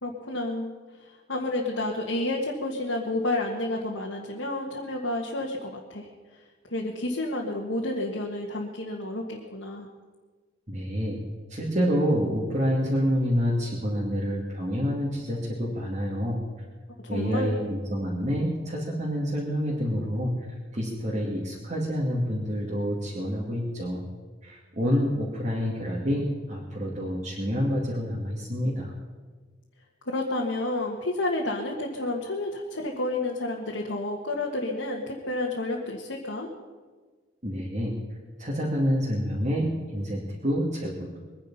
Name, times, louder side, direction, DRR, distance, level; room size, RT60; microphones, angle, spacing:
voice 1, 0.0-0.7 1.0-6.1 6.6-9.9 17.0-17.6 30.1-36.5, left 2 dB, 80° left, -2 dB, 1.7 m, -30 dB
voice 2, 10.7-11.2 11.5-16.4 17.1-20.3 20.7-24.0 24.4-28.9 37.4-37.9 38.4-41.1, equal, 35° right, -5 dB, 2.6 m, -28 dB
23.0 x 10.0 x 5.6 m, 1.4 s
head